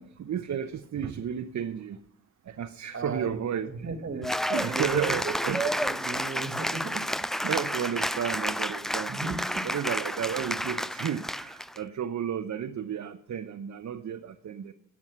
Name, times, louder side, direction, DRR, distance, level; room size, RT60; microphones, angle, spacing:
voice 1, 0.0-2.0 2.4-3.9 4.5-5.7 7.4-9.2 9.6-14.7, right 8 dB, 55° right, 0.8 m, -33 dB
voice 2, 2.9-4.3 4.7-7.1 7.9-8.0 9.1-9.6, right 4 dB, 40° right, 1.7 m, -35 dB
Cheering / Applause, 4.2-11.8, equal, ahead, 0.4 m, -31 dB
11.0 x 7.3 x 9.3 m
cardioid pair, 70°, 33 cm